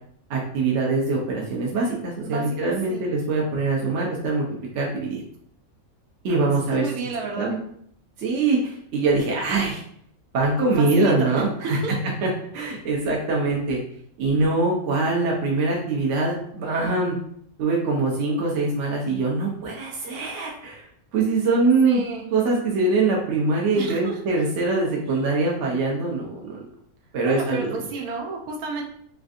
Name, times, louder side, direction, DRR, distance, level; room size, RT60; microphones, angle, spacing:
voice 1, 0.3-4.4 4.7-5.2 6.2-6.9 7.4-7.6 8.2-9.8 10.3-13.8 14.2-17.2 17.6-20.9 21.1-22.0 22.3-26.6 27.1-27.8, right 3 dB, 65° right, -2 dB, 0.9 m, -23 dB
voice 2, 2.2-3.1 6.3-7.6 10.6-11.9 21.8-22.3 23.7-24.2 25.1-25.4 27.3-28.8, right 4 dB, 90° right, 0 dB, 1.2 m, -32 dB
3.2 x 2.4 x 2.5 m, 0.67 s
omnidirectional pair, 1.5 m